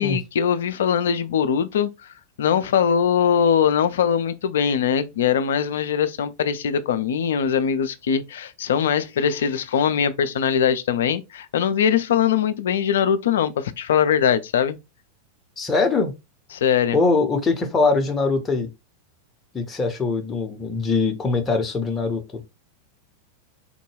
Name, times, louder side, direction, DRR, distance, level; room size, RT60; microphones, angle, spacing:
voice 1, 0.0-14.8 16.5-17.0, left 8 dB, 60° left, 0.4 m, -21 dB
voice 2, 15.6-16.1 16.9-18.7 19.5-22.4, left 3 dB, 20° left, 0.7 m, -22 dB
3.6 x 2.2 x 3.2 m
figure-of-eight pair, 90°, 0 cm